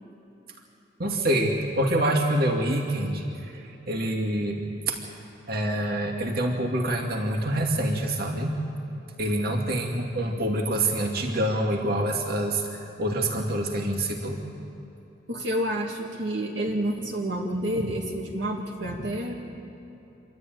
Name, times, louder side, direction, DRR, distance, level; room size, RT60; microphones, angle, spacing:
voice 1, 1.0-5.0 5.5-8.5 9.2-14.4, right 1 dB, 55° right, 0 dB, 2.5 m, -26 dB
voice 2, 15.3-19.3, right 1 dB, 70° right, -2 dB, 2.2 m, -29 dB
27.0 x 13.0 x 9.4 m, 2.9 s
head